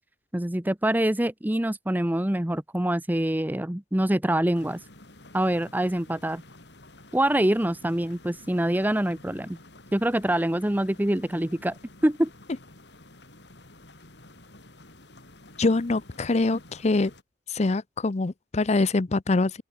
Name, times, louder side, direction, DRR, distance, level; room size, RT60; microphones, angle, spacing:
voice 1, 0.3-4.8 5.3-6.4 7.1-9.6 9.9-11.7 12.0-12.3, right 1 dB, 10° right, 0.9 m, -25 dB
sound 1, 4.5-17.2, left 2 dB, 70° left, 5.5 m, -51 dB
voice 2, 15.6-17.1 17.5-19.6, left 3 dB, 40° left, 0.6 m, -24 dB
open air
head